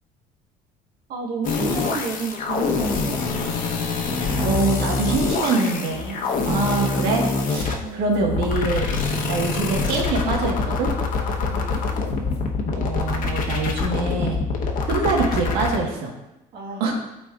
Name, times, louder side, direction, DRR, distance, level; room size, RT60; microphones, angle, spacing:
voice 1, 1.1-3.2 7.8-8.2 11.4-11.8 16.5-16.8, right 4 dB, 70° right, -2 dB, 1.7 m, -31 dB
sound 1, 1.4-15.8, left 4 dB, 60° left, 1.1 m, -25 dB
voice 2, 4.4-6.2 6.4-9.0 9.3-10.9 12.7-14.4 14.9-16.1 16.8-16.9, right 3 dB, 90° right, -2 dB, 1.6 m, -24 dB
sound 2, 5.6-12.4, left 4 dB, 90° left, 1.9 m, -42 dB
12.5 x 4.2 x 2.5 m, 0.93 s
cardioid pair, 115°, 16 cm